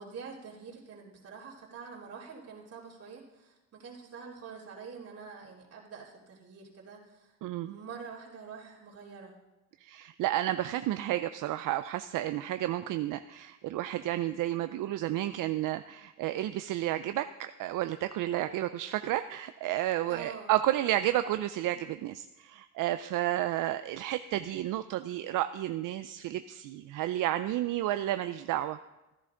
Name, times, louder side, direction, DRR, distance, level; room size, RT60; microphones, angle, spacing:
voice 1, 0.0-7.3 7.6-9.4 20.1-20.5, right 5 dB, 50° right, -4 dB, 3.1 m, -46 dB
voice 2, 7.4-7.8 9.8-28.8, right 13 dB, 75° right, 10 dB, 0.5 m, -31 dB
14.0 x 11.0 x 3.8 m, 1.0 s
cardioid pair, 100°, 32 cm